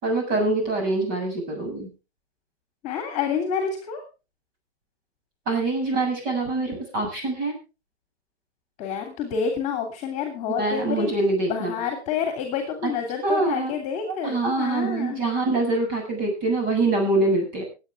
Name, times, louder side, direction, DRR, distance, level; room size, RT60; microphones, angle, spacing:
voice 1, 0.0-1.9 5.5-7.5 10.6-11.7 12.8-12.9 13.2-13.7 14.0-17.6, right 2 dB, 25° right, 2 dB, 7.3 m, -24 dB
voice 2, 2.8-4.0 8.8-11.1 11.5-15.2, left 7 dB, 20° left, 5 dB, 3.0 m, -28 dB
24.0 x 9.0 x 3.6 m, 0.32 s
hypercardioid pair, 150°, 33 cm